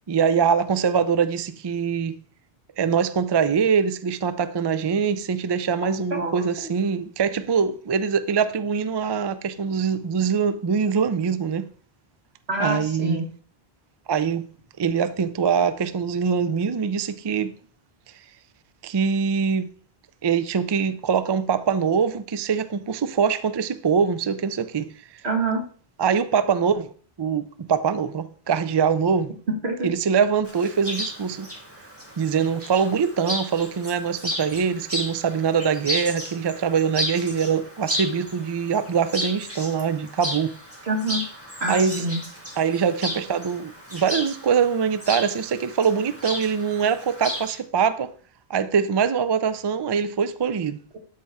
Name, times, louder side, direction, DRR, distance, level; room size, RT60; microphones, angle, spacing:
voice 1, 0.1-2.2 2.8-11.7 12.6-13.2 14.1-14.5 14.8-17.5 18.8-19.7 20.2-24.9 26.0-26.9 27.2-29.3 29.8-31.5 32.2-40.5 41.7-42.1 42.6-48.1 48.5-50.8, right 6 dB, 45° right, 0.3 m, -23 dB
voice 2, 6.1-6.5 12.5-13.3 25.2-25.6 29.6-29.9 40.9-41.2 41.6-42.2, right 2 dB, 85° right, 2.0 m, -26 dB
Chirp tweet, 30.4-47.5, equal, 15° right, 1.9 m, -34 dB
12.0 x 4.3 x 3.6 m
omnidirectional pair, 1.1 m